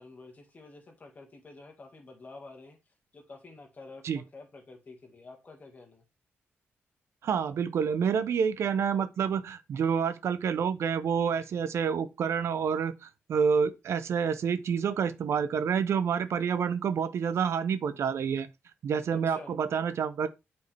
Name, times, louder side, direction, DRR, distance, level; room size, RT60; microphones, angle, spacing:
voice 1, 0.0-2.8 3.1-6.0 19.1-19.5, left 3 dB, 35° left, 1.8 m, -49 dB
voice 2, 7.2-12.9 13.3-18.5 18.8-20.3, right 7 dB, 70° right, 0.7 m, -28 dB
8.3 x 4.5 x 3.4 m
wide cardioid pair, 125°, 5 cm